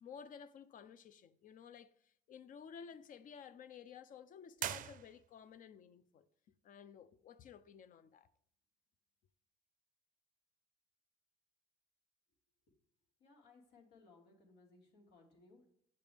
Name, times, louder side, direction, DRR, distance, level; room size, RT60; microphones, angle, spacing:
voice 1, 0.0-6.3 6.6-8.3, left 7 dB, 50° left, 0.6 m, -54 dB
sound 1, 4.5-5.6, right 11 dB, 50° right, 0.4 m, -43 dB
voice 2, 13.2-15.7, left 3 dB, 80° left, 2.1 m, -64 dB
8.4 x 6.9 x 3.4 m
cardioid pair, 110°, 17 cm